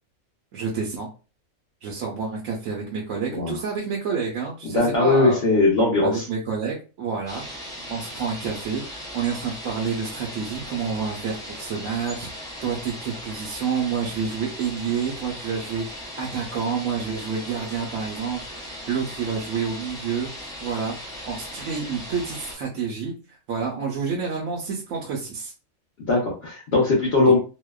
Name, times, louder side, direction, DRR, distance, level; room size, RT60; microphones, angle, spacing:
voice 1, 0.5-1.1 1.8-5.4 6.0-7.4 7.9-20.3 20.6-23.1 23.5-25.5 27.3-27.4, right 6 dB, 80° right, -2 dB, 1.0 m, -29 dB
voice 2, 4.6-6.3 26.1-27.4, left 3 dB, 55° left, -4 dB, 0.9 m, -20 dB
sound 1, 7.3-22.5, equal, 5° left, 0.3 m, -38 dB
2.7 x 2.1 x 2.2 m, 0.34 s
omnidirectional pair, 1.4 m